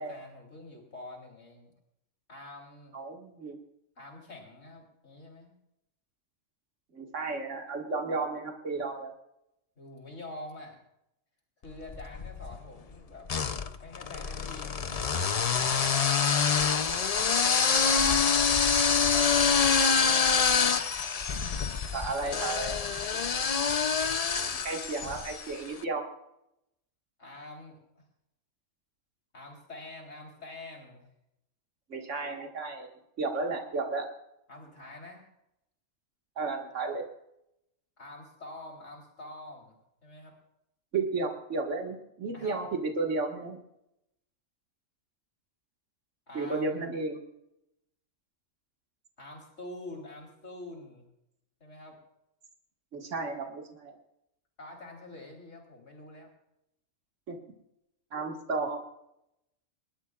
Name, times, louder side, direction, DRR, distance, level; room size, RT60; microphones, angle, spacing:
voice 1, 0.0-1.7 2.3-2.9 4.0-5.6 9.8-10.8 11.6-13.3 13.8-16.5 17.6-18.4 19.8-20.7 22.2-23.7 27.2-28.0 29.3-31.1 34.5-35.3 38.0-39.8 40.0-40.3 42.3-42.7 46.3-46.9 49.2-51.0 51.6-52.0 54.6-56.3, left 2 dB, 70° left, -1 dB, 4.1 m, -46 dB
voice 2, 2.9-3.6 6.9-9.1 21.9-22.7 24.6-26.0 31.9-32.9 33.2-34.1 36.4-37.0 40.9-43.6 46.3-47.2 52.9-53.9 57.3-57.4 58.1-58.8, right 3 dB, 70° right, 2 dB, 2.2 m, -33 dB
sound 1, 11.9-12.6 13.3-25.6, left 6 dB, 40° left, 0.6 m, -26 dB
27.0 x 12.5 x 2.4 m, 0.83 s
omnidirectional pair, 1.3 m